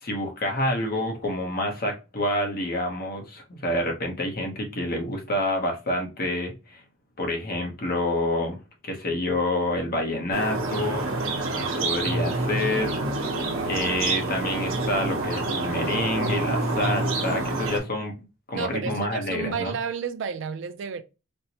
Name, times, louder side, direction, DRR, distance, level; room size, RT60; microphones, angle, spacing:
voice 1, 0.0-6.8 7.2-8.6 8.8-11.0 11.8-13.0 13.6-18.1 18.5-19.7, left 1 dB, 45° left, 0.8 m, -28 dB
sound 1, 10.3-17.8, right 2 dB, 85° right, 0.9 m, -27 dB
voice 2, 18.5-21.0, right 6 dB, 60° right, 0.3 m, -31 dB
4.3 x 2.0 x 2.8 m
head